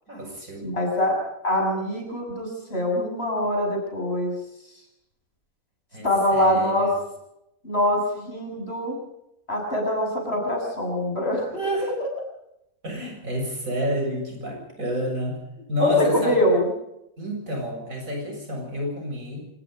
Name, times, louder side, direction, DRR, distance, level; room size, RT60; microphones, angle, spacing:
voice 1, 0.1-0.7 5.9-6.9 11.5-11.9 12.8-15.4 15.7-16.4 17.2-19.5, equal, 75° right, 1 dB, 7.9 m, -30 dB
voice 2, 0.6-1.2 1.4-4.3 6.0-6.9 7.6-9.0 9.5-11.4 12.0-12.1 15.8-16.6, left 1 dB, 45° left, 1 dB, 7.2 m, -23 dB
25.5 x 20.5 x 5.3 m, 0.84 s
omnidirectional pair, 1.4 m